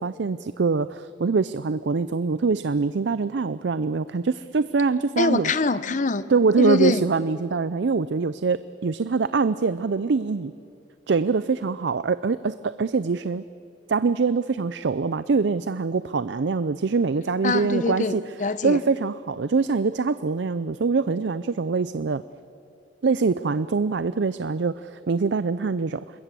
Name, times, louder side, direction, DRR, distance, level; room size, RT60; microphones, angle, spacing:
voice 1, 0.0-5.5 6.3-10.5 11.1-13.4 13.9-18.3 18.6-22.2 23.0-26.0, right 4 dB, 65° right, 14 dB, 0.5 m, -24 dB
voice 2, 5.2-6.2 6.6-7.0 17.4-18.8, left 3 dB, 40° left, 15 dB, 0.8 m, -23 dB
27.0 x 21.0 x 7.6 m, 2.5 s
head